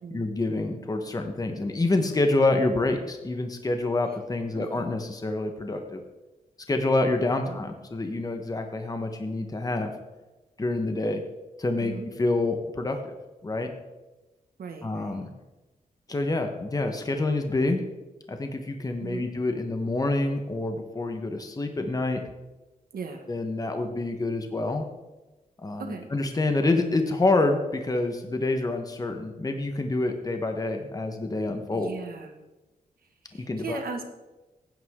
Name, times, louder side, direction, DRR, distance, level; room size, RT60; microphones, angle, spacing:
voice 1, 0.1-6.0 6.7-9.9 10.6-11.2 11.6-11.9 12.2-13.2 13.4-13.7 14.8-15.3 16.1-17.8 18.3-22.2 23.3-24.8 25.6-31.9 33.4-33.8, left 2 dB, 25° left, 5 dB, 1.2 m, -27 dB
voice 2, 4.5-4.9 7.5-7.6 11.8-12.1 14.6-15.3 19.0-19.3 22.9-23.2 25.8-26.1 31.7-32.4 33.3-34.0, right 5 dB, 90° right, 5 dB, 1.7 m, -38 dB
16.5 x 9.6 x 3.7 m, 1.1 s
wide cardioid pair, 145°, 15 cm